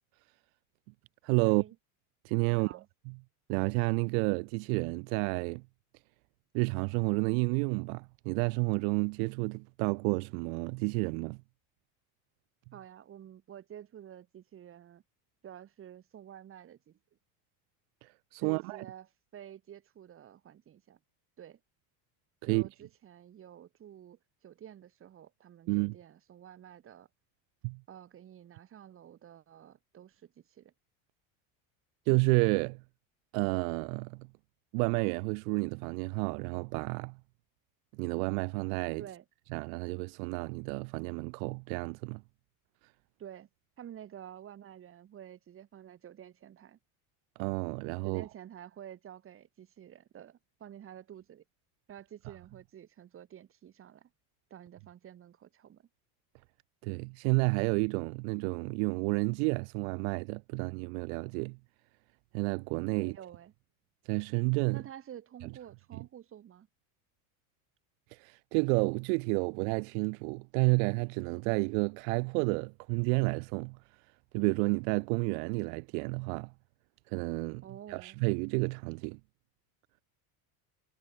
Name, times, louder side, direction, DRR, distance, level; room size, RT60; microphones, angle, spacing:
voice 1, 1.2-1.6 2.2-2.7 3.0-3.2 3.5-5.6 6.5-11.4 18.0-18.8 22.4-22.6 25.7-25.9 27.6-27.8 32.1-32.8 33.3-34.3 34.7-37.2 37.9-39.0 39.5-42.2 47.4-48.3 56.8-61.6 62.3-63.2 64.0-64.8 65.9-66.0 68.1-73.8 74.3-76.5 77.1-77.6 77.9-79.2, right 40 dB or more, 70° right, 1.5 m, -30 dB
voice 2, 2.5-2.9 12.7-15.0 15.4-17.0 18.4-19.1 19.3-21.0 21.4-21.6 22.4-27.1 27.9-30.7 39.0-39.2 43.2-43.5 43.8-46.8 48.0-51.4 51.9-54.1 54.5-55.9 63.0-63.5 64.7-66.7 77.6-78.2, right 10 dB, 30° right, 5.9 m, -50 dB
cardioid pair, 165°, 43 cm